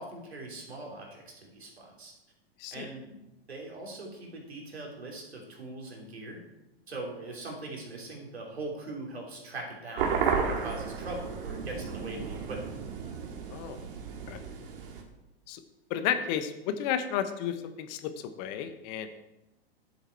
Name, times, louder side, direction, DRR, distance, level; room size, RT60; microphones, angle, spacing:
voice 1, 0.0-2.1 2.7-3.2 3.5-6.4 6.9-12.7, right 2 dB, 80° right, -1 dB, 3.2 m, -41 dB
sound 1, 10.0-15.0, right 6 dB, 60° right, 2.0 m, -33 dB
voice 2, 15.9-18.1 18.4-19.1, left 9 dB, 45° left, 9 dB, 1.1 m, -32 dB
10.5 x 7.9 x 4.6 m, 0.95 s
hypercardioid pair, 105°, 31 cm